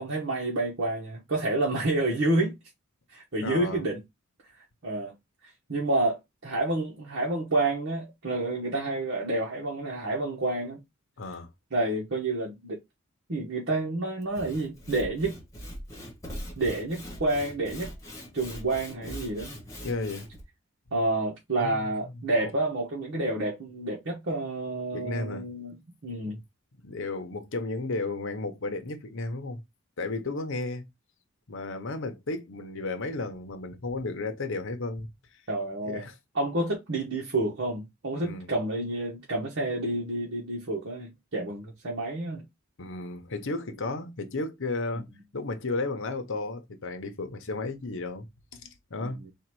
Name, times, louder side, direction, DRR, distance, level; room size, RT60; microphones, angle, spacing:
voice 1, 0.0-2.6 3.1-4.0 4.8-5.1 5.7-10.8 11.7-12.8 13.3-15.4 16.6-17.9 18.3-19.5 20.9-26.4 35.5-36.0 36.3-42.4 49.0-49.3, right 2 dB, 60° right, 1.2 m, -29 dB
voice 2, 3.4-3.8 11.2-11.5 19.8-20.3 21.6-21.9 22.1-22.2 24.9-25.5 26.3-26.4 26.8-29.6 30.0-30.8 31.5-35.1 35.9-36.1 38.2-38.5 42.8-45.1 45.3-48.3 48.5-49.2, left 3 dB, 65° left, 0.9 m, -33 dB
Sawing / Wood, 14.2-20.4, equal, 15° left, 1.4 m, -41 dB
3.9 x 2.6 x 4.6 m
head